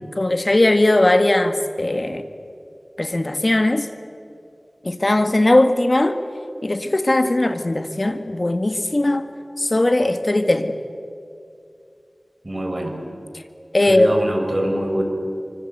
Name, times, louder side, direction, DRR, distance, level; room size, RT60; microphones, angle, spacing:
voice 1, 0.2-2.3 3.0-3.9 4.8-6.2 6.6-9.2 9.6-10.8 13.7-14.1, left 1 dB, 45° left, 9 dB, 1.7 m, -18 dB
voice 2, 12.4-13.0 13.8-15.0, right 1 dB, 40° right, 4 dB, 4.9 m, -24 dB
25.0 x 24.5 x 8.0 m, 2.5 s
wide cardioid pair, 50°, 0 cm